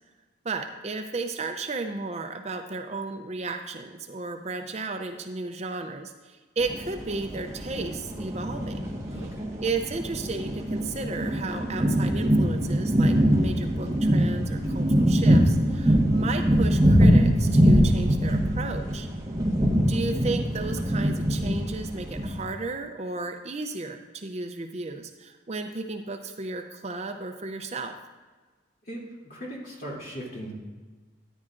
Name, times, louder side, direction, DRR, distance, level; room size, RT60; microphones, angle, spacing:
voice 1, 0.4-8.9 9.6-19.1 19.9-27.9, right 3 dB, 35° right, 6 dB, 0.5 m, -34 dB
sound 1, 6.6-22.4, equal, 15° right, 1.3 m, -23 dB
voice 2, 9.1-9.5 28.8-29.0 29.3-30.5, equal, 45° left, -4 dB, 2.8 m, -38 dB
14.0 x 9.7 x 2.5 m, 1.3 s
head